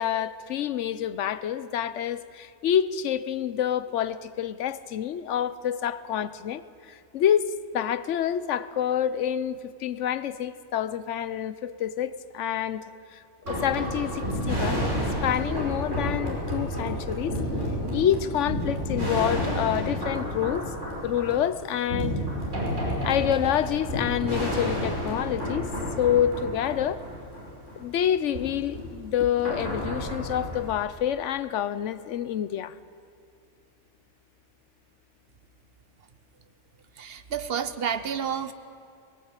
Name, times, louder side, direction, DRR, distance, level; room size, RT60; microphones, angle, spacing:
voice 1, 0.0-6.6 7.1-12.8 13.5-17.4 17.9-20.7 21.0-22.2 23.0-25.7 26.0-27.0 27.8-32.7, left 10 dB, 80° left, 1.0 m, -27 dB
sound 1, 13.4-28.1 28.3-28.4 28.7-28.8 29.4-30.7, equal, 85° right, 6.0 m, -30 dB
voice 2, 37.0-38.5, right 7 dB, 60° right, 1.1 m, -30 dB
19.0 x 17.0 x 9.0 m
omnidirectional pair, 1.2 m